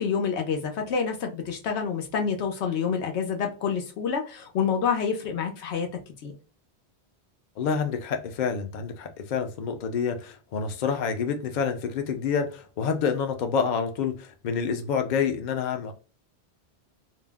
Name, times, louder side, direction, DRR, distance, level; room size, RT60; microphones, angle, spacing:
voice 1, 0.0-5.9 6.2-6.3, left 6 dB, 90° left, 1.0 m, -27 dB
voice 2, 7.6-15.9, left 6 dB, 55° left, 0.6 m, -28 dB
2.6 x 2.0 x 3.3 m
omnidirectional pair, 1.1 m